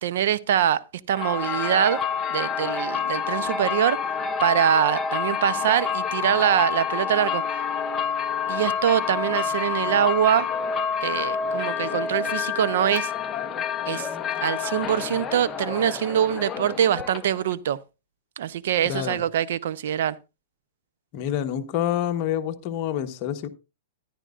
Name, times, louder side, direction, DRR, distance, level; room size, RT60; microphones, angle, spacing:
voice 1, 0.0-2.0 2.3-4.0 4.4-7.4 8.5-10.5 11.0-13.1 13.9-14.1 14.4-17.8 18.4-20.2, right 10 dB, 65° right, 0.6 m, -23 dB
sound 1, 1.1-17.5, left 6 dB, 15° left, 0.7 m, -28 dB
voice 2, 18.9-19.2 21.1-23.5, left 10 dB, 35° left, 1.1 m, -27 dB
14.0 x 10.5 x 2.5 m
hypercardioid pair, 155°, 0 cm